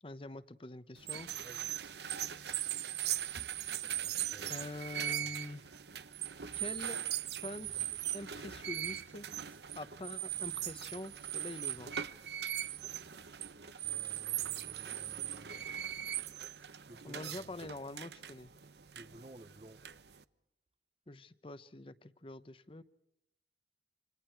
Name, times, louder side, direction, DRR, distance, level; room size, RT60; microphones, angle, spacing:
voice 1, 0.0-1.3 4.5-5.7 6.6-7.0 7.4-9.3 9.8-11.9 17.0-18.5 21.1-22.8, left 2 dB, 30° left, 0.8 m, -45 dB
sound 1, 1.0-20.2, right 11 dB, 75° right, 0.9 m, -40 dB
voice 2, 1.4-1.7 4.1-4.5 5.2-5.3 7.7-7.8 13.8-15.6 16.9-17.5 18.9-19.8, right 2 dB, 35° right, 0.7 m, -55 dB
27.5 x 26.0 x 4.6 m
head